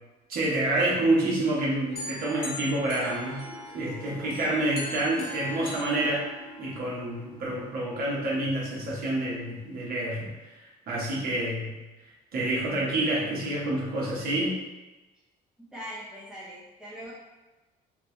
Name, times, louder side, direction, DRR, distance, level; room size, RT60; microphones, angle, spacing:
voice 1, 0.3-3.4 3.7-6.2 6.6-10.3 10.9-11.7 12.3-14.6, right 1 dB, 60° right, -5 dB, 1.3 m, -28 dB
Harp, 1.8-10.1, right 1 dB, 25° right, 1.1 m, -45 dB
sound 1, 2.0-3.9 4.3-6.8, left 3 dB, 35° left, 1.5 m, -41 dB
voice 2, 15.7-17.1, equal, 5° right, -9 dB, 0.8 m, -41 dB
3.3 x 2.8 x 3.2 m, 1.1 s
cardioid pair, 110°, 17 cm